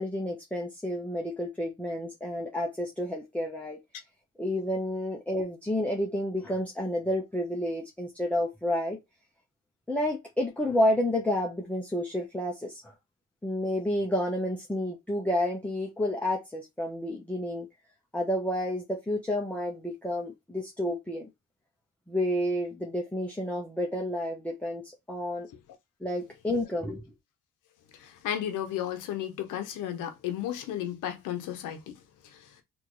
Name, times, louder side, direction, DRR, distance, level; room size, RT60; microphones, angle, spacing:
voice 1, 0.0-3.8 4.4-9.0 9.9-12.9 13.4-17.7 18.1-21.3 22.1-24.8 25.1-25.5 26.0-27.0, left 1 dB, 5° left, 0.8 m, -30 dB
voice 2, 28.0-32.5, left 11 dB, 85° left, 0.9 m, -34 dB
4.2 x 2.6 x 3.1 m
cardioid pair, 90°, 30 cm